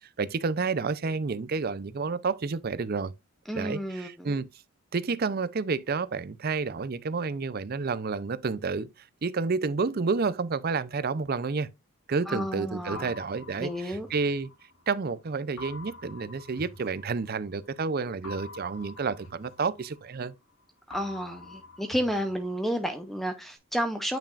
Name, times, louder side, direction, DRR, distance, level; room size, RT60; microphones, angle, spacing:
voice 1, 0.2-3.1 3.5-4.5 4.9-8.9 9.2-11.7 12.1-14.5 14.9-20.3, right 4 dB, 45° right, 0.5 m, -30 dB
voice 2, 3.5-4.3 12.3-13.1 13.6-14.1 20.9-24.2, equal, ahead, 0.6 m, -31 dB
sound 1, 12.9-15.0 15.6-17.6 18.2-20.5 20.9-23.0, left 2 dB, 75° left, 1.7 m, -46 dB
9.0 x 5.7 x 2.4 m
head